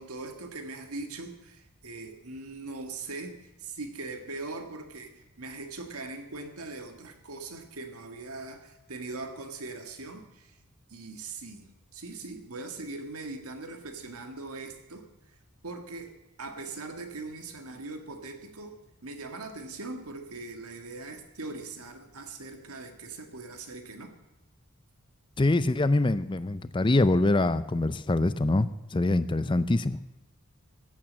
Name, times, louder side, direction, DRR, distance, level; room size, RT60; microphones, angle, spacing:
voice 1, 0.0-10.6 10.9-15.4 15.6-16.1 16.4-18.8 19.0-24.1, right 3 dB, 85° right, 6 dB, 1.8 m, -41 dB
voice 2, 25.4-30.0, left 2 dB, 20° left, 14 dB, 0.5 m, -24 dB
15.0 x 8.8 x 7.4 m, 1.0 s
head